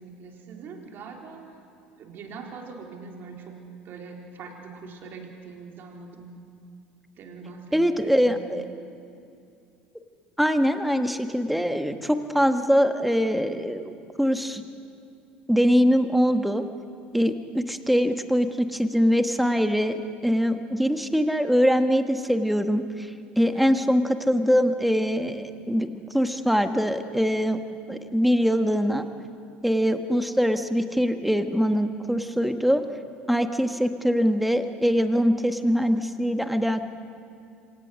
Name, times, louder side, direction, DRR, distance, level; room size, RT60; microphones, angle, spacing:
voice 1, 0.0-1.5 2.0-6.4 7.2-8.6 23.5-23.8, right 4 dB, 50° right, 1 dB, 3.6 m, -42 dB
voice 2, 7.7-8.6 10.4-13.9 14.2-14.6 15.5-16.6 17.1-19.9 20.2-23.1 23.4-27.6 27.9-29.0 29.6-32.8 33.3-36.8, equal, ahead, 8 dB, 1.5 m, -23 dB
26.5 x 17.5 x 6.5 m, 2.6 s
hypercardioid pair, 70°, 5 cm